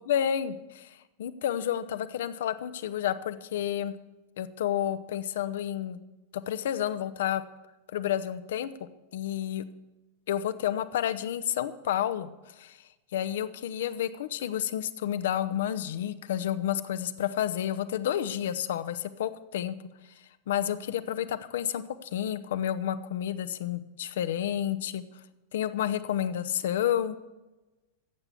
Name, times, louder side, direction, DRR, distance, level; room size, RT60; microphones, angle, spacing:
voice 1, 0.1-3.9 4.4-6.0 6.3-7.4 7.9-8.7 9.1-9.6 10.3-12.3 12.6-12.8 13.1-19.8 20.5-25.0 25.5-27.2, left 10 dB, 60° left, 12 dB, 0.8 m, -30 dB
15.0 x 8.2 x 7.0 m, 1.1 s
figure-of-eight pair, 90°, 0 cm